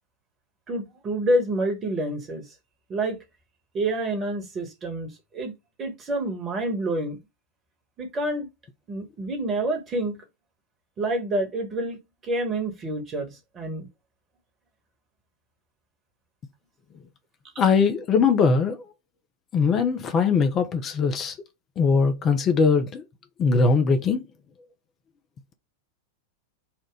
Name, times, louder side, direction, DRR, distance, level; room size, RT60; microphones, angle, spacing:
voice 1, 0.7-2.4 2.9-3.2 3.7-5.1 5.3-5.5 5.8-7.2 8.0-8.5 8.9-10.2 11.0-12.0 12.3-13.9, right 1 dB, 25° right, 1.6 m, -27 dB
voice 2, 17.6-18.9 19.5-21.3 21.8-23.0 23.4-24.2, left 5 dB, 30° left, 0.7 m, -21 dB
4.3 x 2.5 x 4.8 m
figure-of-eight pair, 90°, 0 cm